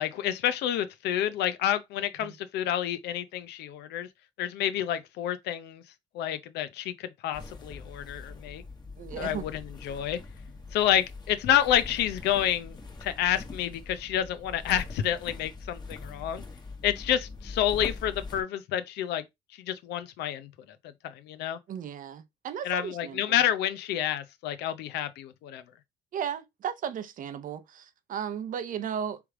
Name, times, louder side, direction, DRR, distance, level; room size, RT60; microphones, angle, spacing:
voice 1, 0.0-4.1 4.4-5.8 6.1-8.6 9.2-10.2 10.7-16.4 16.8-19.2 19.6-20.5 21.0-21.6 22.6-25.6, left 11 dB, 80° left, 0.7 m, -29 dB
sound 1, 7.3-18.4, left 3 dB, 25° left, 1.2 m, -42 dB
voice 2, 9.0-9.5 21.7-23.4 26.1-29.2, right 8 dB, 55° right, 0.8 m, -35 dB
3.4 x 3.1 x 4.8 m
cardioid pair, 110°, 17 cm